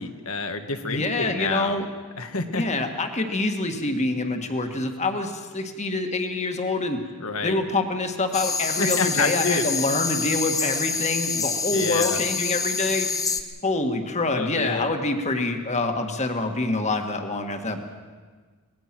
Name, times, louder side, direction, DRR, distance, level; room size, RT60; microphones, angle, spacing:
voice 1, 0.0-1.8 2.2-2.6 7.2-7.6 8.8-9.7 11.7-12.2 14.3-15.0, left 3 dB, 65° left, 7 dB, 1.6 m, -28 dB
voice 2, 0.8-1.9 2.5-7.0 7.4-13.1 13.6-17.8, left 2 dB, 30° left, 5 dB, 1.7 m, -26 dB
sound 1, 8.3-13.4, left 5 dB, 15° left, 1.0 m, -27 dB
24.5 x 19.5 x 6.1 m, 1.5 s
head